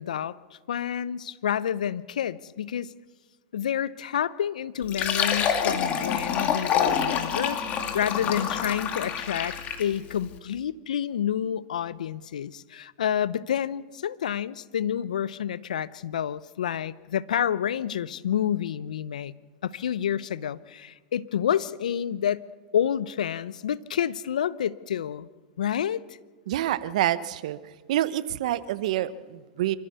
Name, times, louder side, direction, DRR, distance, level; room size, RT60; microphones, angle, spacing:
voice 1, 0.0-2.9 3.5-7.6 7.9-19.3 19.6-22.4 22.7-25.3 25.6-26.2, left 9 dB, 80° left, 18 dB, 0.7 m, -29 dB
Fill (with liquid), 4.8-10.0, left 7 dB, 35° left, 2.5 m, -27 dB
voice 2, 26.5-27.6 27.9-29.7, right 13 dB, 65° right, 15 dB, 1.0 m, -27 dB
27.0 x 14.0 x 6.9 m, 1.3 s
hypercardioid pair, 105°, 4 cm